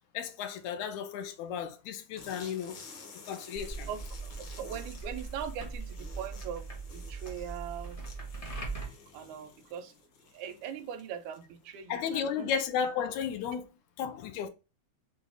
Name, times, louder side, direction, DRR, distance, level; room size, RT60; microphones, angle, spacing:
voice 1, 0.1-2.8 3.3-3.9 8.8-8.9 11.9-13.6 14.0-14.5, left 7 dB, 80° left, 1.9 m, -34 dB
sound 1, 2.1-11.6, left 4 dB, 60° left, 1.3 m, -52 dB
sound 2, 3.5-8.8, right 3 dB, 45° left, 0.4 m, -40 dB
voice 2, 3.9-6.7 6.9-8.0 9.1-9.9 10.3-12.6, right 8 dB, 80° right, 2.0 m, -41 dB
5.3 x 2.3 x 3.8 m
omnidirectional pair, 3.5 m